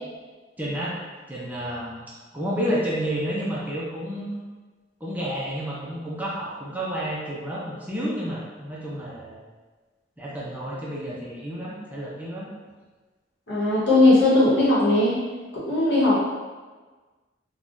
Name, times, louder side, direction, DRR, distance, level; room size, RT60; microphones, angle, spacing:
voice 1, 0.6-1.0 1.3-4.3 5.0-9.4 10.2-12.5, equal, 10° right, -6 dB, 0.4 m, -30 dB
voice 2, 13.5-15.2 15.5-16.2, left 2 dB, 65° left, -8 dB, 1.1 m, -18 dB
3.4 x 2.2 x 2.5 m, 1.3 s
head